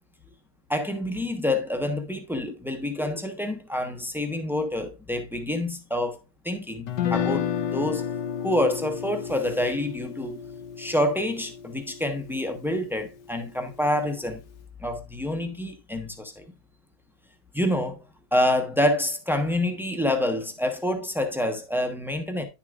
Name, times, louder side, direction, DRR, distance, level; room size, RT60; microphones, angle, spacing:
voice 1, 0.7-6.2 6.4-8.1 8.4-10.4 10.8-14.4 14.8-16.4 17.5-18.0 18.3-22.4, left 1 dB, ahead, 0.6 m, -27 dB
Guitar, 6.9-13.0, left 8 dB, 70° left, 1.5 m, -31 dB
10.5 x 7.0 x 2.5 m
omnidirectional pair, 2.1 m